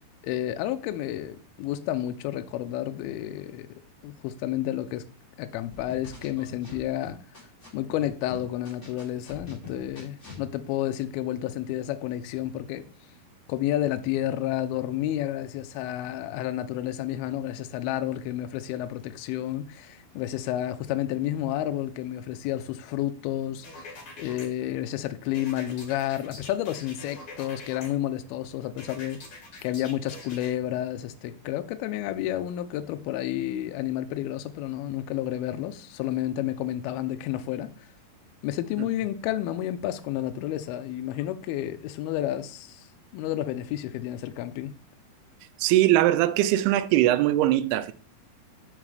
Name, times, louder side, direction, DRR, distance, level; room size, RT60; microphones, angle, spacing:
voice 1, 0.2-5.0 5.4-7.2 7.7-12.9 13.5-29.2 29.6-37.7 38.4-42.9 43.1-44.7, left 12 dB, 80° left, 2.5 m, -31 dB
sound 1, 5.7-7.7 8.0-10.4, left 4 dB, 20° left, 1.8 m, -44 dB
sound 2, 23.6-24.5 25.3-27.9 28.8-30.5, left 3 dB, 40° left, 2.6 m, -44 dB
voice 2, 45.6-47.9, right 14 dB, 90° right, 2.5 m, -21 dB
7.3 x 6.1 x 3.3 m
omnidirectional pair, 4.4 m